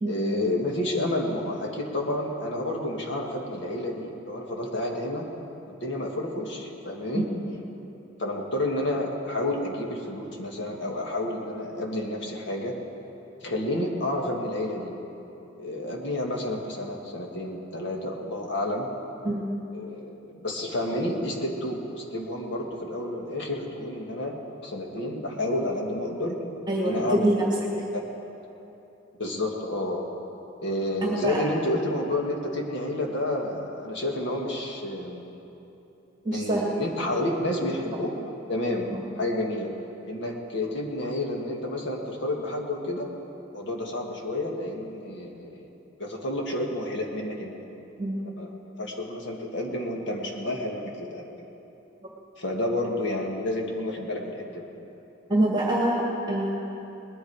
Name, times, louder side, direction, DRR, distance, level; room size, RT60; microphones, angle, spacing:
voice 1, 0.1-5.3 5.6-7.3 8.2-12.7 13.4-15.0 15.6-18.9 19.7-26.4 26.8-27.4 29.2-30.1 30.6-35.3 36.3-38.1 38.5-38.9 39.2-39.7 40.0-43.1 43.5-45.7 46.0-47.6 48.4-51.2 52.4-54.6, left 1 dB, 65° left, 0 dB, 1.8 m, -30 dB
voice 2, 26.7-27.5 31.0-31.5 36.2-36.6 38.9-39.0 48.0-48.2 55.3-56.7, right 1 dB, 20° right, -2 dB, 1.7 m, -25 dB
20.0 x 10.5 x 4.8 m, 3.0 s
head